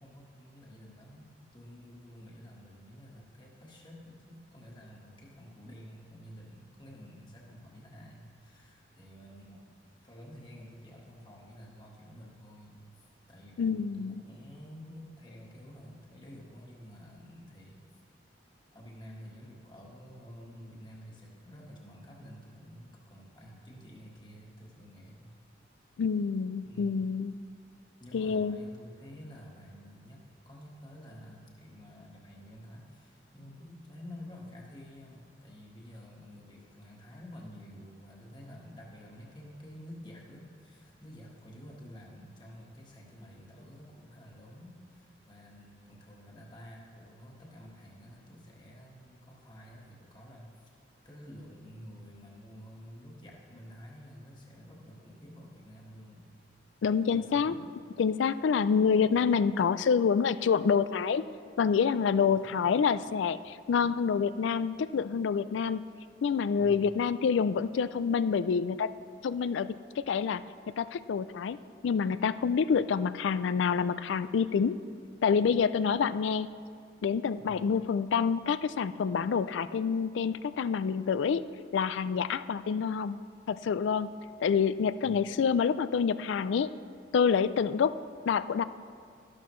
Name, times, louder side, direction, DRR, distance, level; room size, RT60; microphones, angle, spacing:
voice 1, 0.0-17.8 18.7-25.3 26.6-27.1 28.0-50.5 51.0-56.3 57.1-57.6 62.2-62.6 66.6-66.9 77.4-77.6 85.0-85.3, equal, 25° left, -2 dB, 1.5 m, -50 dB
voice 2, 13.6-14.2 26.0-27.3 28.1-28.6 56.8-57.6 58.0-61.3 61.6-65.9 66.2-68.9 69.2-70.4 70.8-71.6 71.8-74.8 75.2-76.5 77.0-81.4 81.7-83.2 83.5-84.1 84.4-86.7 87.1-88.0 88.3-88.6, left 6 dB, 90° left, 15 dB, 0.3 m, -27 dB
13.0 x 11.5 x 3.1 m, 2.2 s
head